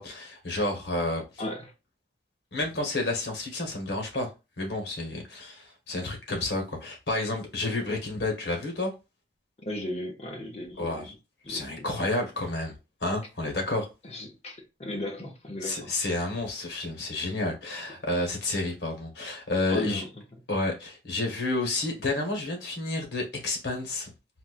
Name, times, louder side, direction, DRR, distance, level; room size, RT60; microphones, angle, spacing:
voice 1, 0.0-1.2 2.5-4.3 4.6-8.9 10.8-11.0 11.5-12.7 13.0-13.9 15.6-20.0 20.5-24.1, left 2 dB, 80° left, 1.2 m, -30 dB
voice 2, 1.4-1.7 9.7-11.1 11.4-11.9 14.0-15.9 19.7-20.1, left 1 dB, 35° left, 0.8 m, -36 dB
4.2 x 2.2 x 2.4 m
head